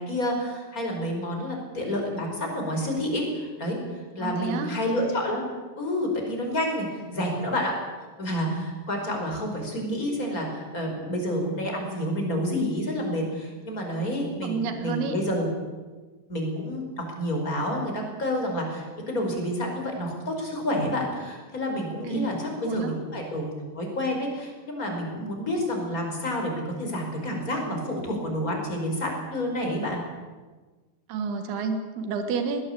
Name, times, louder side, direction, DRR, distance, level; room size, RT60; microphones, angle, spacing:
voice 1, 0.0-3.8 4.2-5.4 5.8-7.8 8.2-15.5 16.3-30.0, left 1 dB, 20° left, 2 dB, 5.2 m, -29 dB
voice 2, 4.2-4.7 14.4-15.2 22.0-22.3 22.6-22.9 31.1-32.6, right 5 dB, 85° right, 7 dB, 3.9 m, -29 dB
20.5 x 17.5 x 8.7 m, 1.3 s
omnidirectional pair, 4.4 m